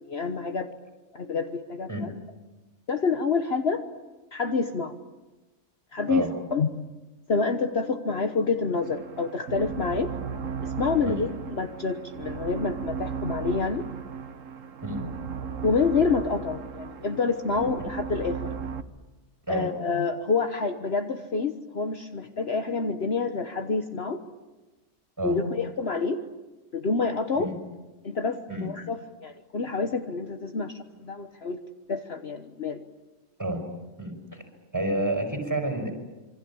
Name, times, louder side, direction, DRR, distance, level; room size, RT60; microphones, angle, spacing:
voice 1, 0.0-0.7 1.1-2.1 2.9-3.9 4.3-5.0 5.9-6.7 7.3-10.1 10.6-13.9 15.6-18.4 19.5-24.2 25.2-26.2 26.7-27.5 28.0-31.6 31.9-32.8, left 4 dB, 50° left, 7 dB, 1.4 m, -28 dB
sound 1, 8.8-18.8, right 6 dB, 70° right, 1.6 m, -35 dB
voice 2, 34.0-34.4 34.7-35.9, right 1 dB, 15° right, 5 dB, 5.4 m, -29 dB
27.5 x 24.5 x 8.6 m, 1.2 s
omnidirectional pair, 1.4 m